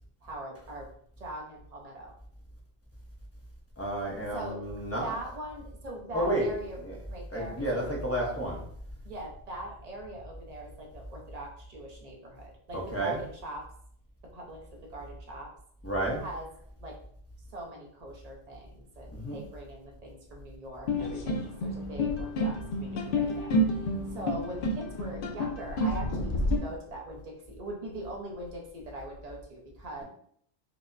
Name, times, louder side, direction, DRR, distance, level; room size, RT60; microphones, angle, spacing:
voice 1, 0.2-0.9 1.2-2.1 4.3-6.8 7.1-8.0 9.0-13.6 14.3-14.6 14.9-15.5 16.2-16.5 16.8-17.0 17.5-30.0, right 1 dB, 40° right, -1 dB, 0.7 m, -41 dB
voice 2, 3.8-5.1 6.1-6.5 6.8-6.9 7.3-8.6 12.7-13.2 15.8-16.2 19.1-19.4, right 1 dB, 15° left, -3 dB, 0.6 m, -31 dB
sound 1, 20.9-26.6, left 1 dB, 60° left, 0.6 m, -29 dB
4.5 x 2.1 x 2.5 m, 0.65 s
omnidirectional pair, 1.2 m